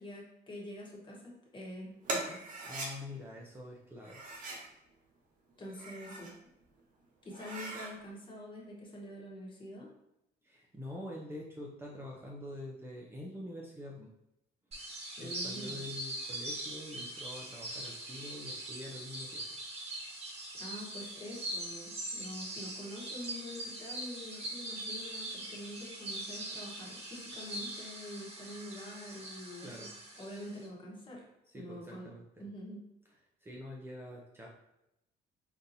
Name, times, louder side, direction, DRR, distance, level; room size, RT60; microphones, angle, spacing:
voice 1, 0.0-2.4 5.6-6.3 7.2-9.9 15.2-15.8 20.6-29.9 30.2-31.3 31.5-32.1 32.4-32.8, left 1 dB, 30° left, -3 dB, 1.1 m, -46 dB
sound 1, 2.0-2.9 4.0-4.7 5.6-6.4 6.8-6.9 7.3-7.9, right 2 dB, 50° right, 0.8 m, -40 dB
voice 2, 2.6-4.2 10.4-14.1 14.7-19.6 29.6-29.9 31.5-32.4 33.4-34.5, left 1 dB, 15° right, -3 dB, 0.5 m, -46 dB
sound 2, 14.7-30.7, right 1 dB, 35° right, 1.2 m, -42 dB
3.8 x 2.8 x 2.7 m, 0.86 s
cardioid pair, 110°, 17 cm